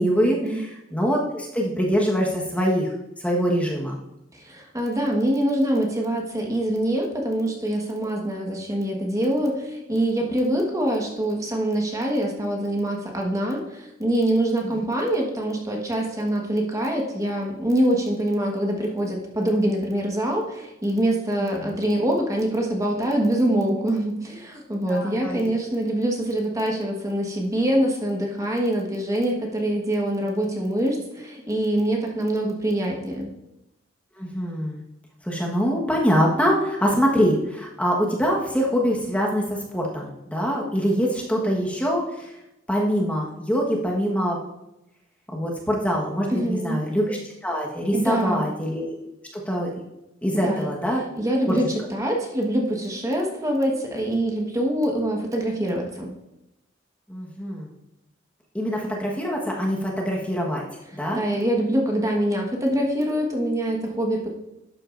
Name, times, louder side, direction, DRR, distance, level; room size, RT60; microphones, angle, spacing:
voice 1, 0.0-2.9 3.2-3.9 14.6-14.7 21.4-21.7 24.9-25.5 34.2-34.8 35.2-42.3 42.7-44.4 45.3-48.9 49.5-49.7 50.2-51.0 51.5-51.6 57.1-57.7 58.5-60.6 60.9-61.2, equal, 5° left, -2 dB, 1.3 m, -24 dB
voice 2, 4.3-33.3 46.3-46.8 47.9-48.5 50.4-50.7 51.1-56.1 60.9-64.3, right 1 dB, 15° right, 0 dB, 1.3 m, -24 dB
11.5 x 8.4 x 2.5 m, 0.90 s
head